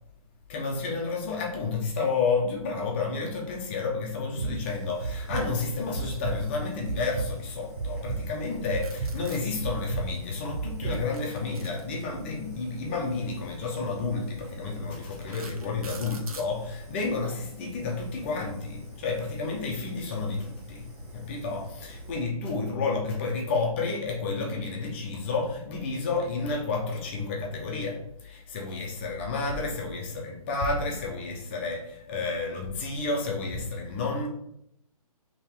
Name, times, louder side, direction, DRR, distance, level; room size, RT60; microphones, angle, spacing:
voice 1, 0.5-34.3, left 4 dB, 20° left, -1 dB, 0.5 m, -31 dB
sound 1, 4.4-4.5 5.0-5.4 5.9-6.3 6.8-7.3 7.8-8.2 8.7-9.1 9.6-10.0 10.5-10.9, right 4 dB, 40° right, 0.9 m, -31 dB
Fire, 4.6-22.1, equal, 15° right, 0.7 m, -46 dB
sound 2, 8.6-9.4 10.9-12.3 13.5-13.6 14.2-14.3 14.9-16.5, right 4 dB, 75° right, 0.9 m, -44 dB
3.5 x 2.9 x 4.3 m, 0.75 s
hypercardioid pair, 160°, 19 cm